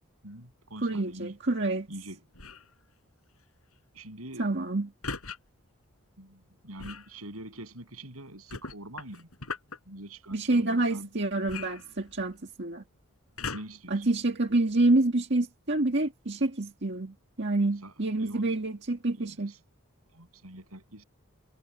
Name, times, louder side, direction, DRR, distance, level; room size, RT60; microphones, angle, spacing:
voice 1, 0.2-1.3 1.9-2.2 3.9-4.6 6.2-9.3 9.9-11.1 13.5-14.0 17.8-18.6 19.2-19.6 20.1-21.0, right 1 dB, 90° right, 8.0 m, -44 dB
voice 2, 0.8-1.9 4.4-4.9 10.3-12.8 13.9-19.5, right 2 dB, 55° right, 1.9 m, -27 dB
sound 1, 2.3-2.7 5.0-5.4 6.8-7.1 8.5-9.8 11.5-12.4 13.4-13.9 14.6-14.7, left 4 dB, 85° left, 7.1 m, -39 dB
head